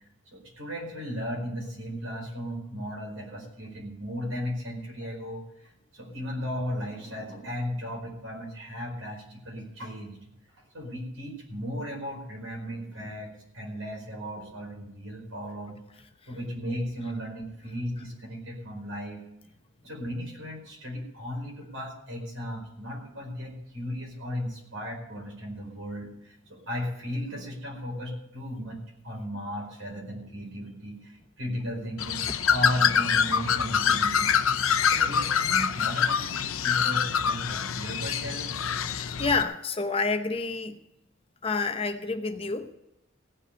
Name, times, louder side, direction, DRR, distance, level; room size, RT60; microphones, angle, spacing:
voice 1, 0.3-10.3 10.7-15.8 16.3-19.2 19.8-38.8, equal, 75° right, -1 dB, 4.8 m, -36 dB
Bird, 32.0-39.4, left 7 dB, 80° left, 0.7 m, -25 dB
voice 2, 38.9-40.8 41.4-42.7, left 4 dB, 25° left, 8 dB, 0.7 m, -29 dB
16.0 x 5.5 x 10.0 m, 0.82 s
head